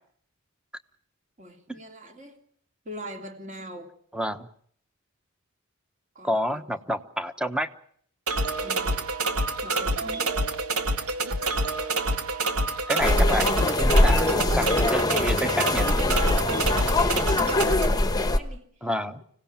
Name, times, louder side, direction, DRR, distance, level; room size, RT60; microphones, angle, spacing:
voice 1, 1.4-2.4 2.8-3.9 6.1-6.6 6.9-7.0 8.6-9.0 9.6-10.4 16.4-18.9, equal, 35° right, 4 dB, 3.1 m, -43 dB
voice 2, 4.1-4.5 6.2-7.7 12.9-15.9 18.8-19.2, equal, 5° right, 10 dB, 1.1 m, -29 dB
sound 1, 8.3-17.9, right 2 dB, 90° right, 2.0 m, -27 dB
sound 2, 13.0-18.4, left 2 dB, 15° left, 1.1 m, -22 dB
25.5 x 17.5 x 8.9 m, 0.63 s
head